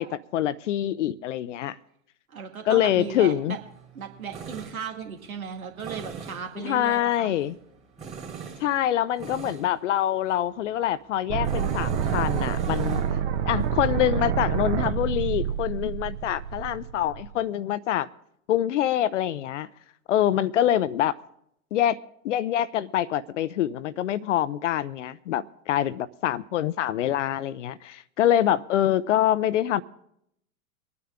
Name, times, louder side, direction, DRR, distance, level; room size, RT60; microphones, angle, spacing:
voice 1, 0.0-1.8 2.7-3.6 6.6-7.5 8.6-13.0 13.5-18.1 18.5-19.7 20.1-21.2 21.7-22.0 22.2-29.8, left 11 dB, 60° left, 0.6 m, -25 dB
voice 2, 2.3-3.6 3.9-7.4, right 6 dB, 75° right, 2.1 m, -36 dB
Tools, 2.7-16.8, right 5 dB, 15° right, 2.5 m, -43 dB
sound 1, 11.3-17.3, right 8 dB, 45° right, 1.3 m, -27 dB
24.0 x 9.6 x 3.7 m
figure-of-eight pair, 105°, 43 cm